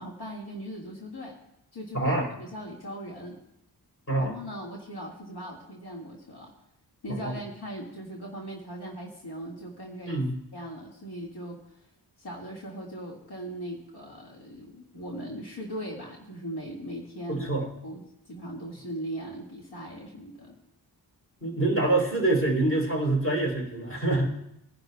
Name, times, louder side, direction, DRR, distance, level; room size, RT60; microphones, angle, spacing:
voice 1, 0.0-1.4 1.7-3.4 4.2-6.5 7.0-10.2 10.5-11.8 12.2-17.5 17.8-20.6, equal, 70° left, -2 dB, 1.9 m, -39 dB
voice 2, 1.9-2.3 4.1-4.3 7.1-7.4 10.1-10.4 17.3-17.7 21.4-24.3, right 2 dB, 35° left, -2 dB, 3.3 m, -25 dB
21.5 x 10.5 x 2.2 m, 0.77 s
wide cardioid pair, 115°, 40 cm